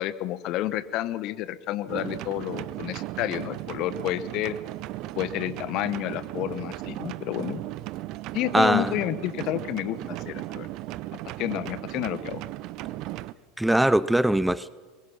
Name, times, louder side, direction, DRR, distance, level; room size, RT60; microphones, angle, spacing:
voice 1, 0.0-4.6 5.2-7.6 8.3-10.7 11.4-12.4, left 14 dB, 50° left, 15 dB, 1.2 m, -30 dB
sound 1, 1.9-13.3, right 17 dB, 50° right, 0.7 m, -36 dB
voice 2, 8.5-8.9 13.6-14.7, right 1 dB, 5° right, 18 dB, 0.5 m, -21 dB
23.5 x 21.5 x 5.9 m, 1.4 s
figure-of-eight pair, 80°, 0 cm